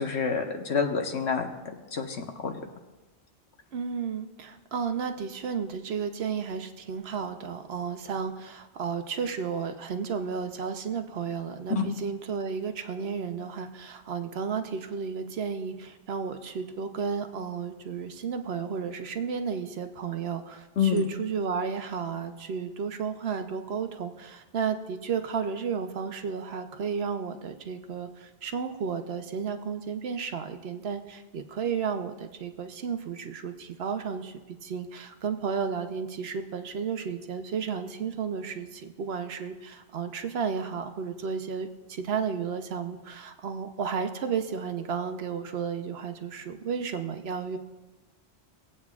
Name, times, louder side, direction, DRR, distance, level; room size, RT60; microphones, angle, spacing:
voice 1, 0.0-2.6 11.7-11.9 20.8-21.0, left 5 dB, 85° left, 3 dB, 1.3 m, -28 dB
voice 2, 3.7-47.6, right 6 dB, 70° right, 7 dB, 1.0 m, -33 dB
19.5 x 8.5 x 2.4 m, 1.1 s
omnidirectional pair, 1.1 m